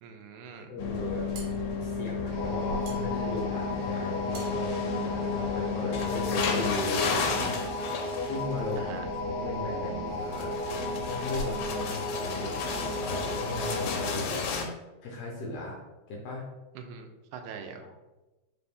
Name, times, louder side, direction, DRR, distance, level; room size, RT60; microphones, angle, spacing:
voice 1, 0.0-0.7 8.8-9.1 16.8-17.9, right 6 dB, 90° right, 5 dB, 2.0 m, -43 dB
voice 2, 0.5-1.3 1.8-9.0 9.2-10.6 11.0-14.4 15.0-15.8 16.1-16.5 17.8-17.9, left 2 dB, 75° left, -2 dB, 1.5 m, -37 dB
sound 1, 0.8-14.7, left 5 dB, 90° left, 2.1 m, -33 dB
sound 2, 1.0-5.9, right 4 dB, 70° right, 2.1 m, -51 dB
sound 3, 2.3-14.2, left 1 dB, 45° left, 0.8 m, -34 dB
4.9 x 2.6 x 3.4 m, 1.1 s
omnidirectional pair, 3.3 m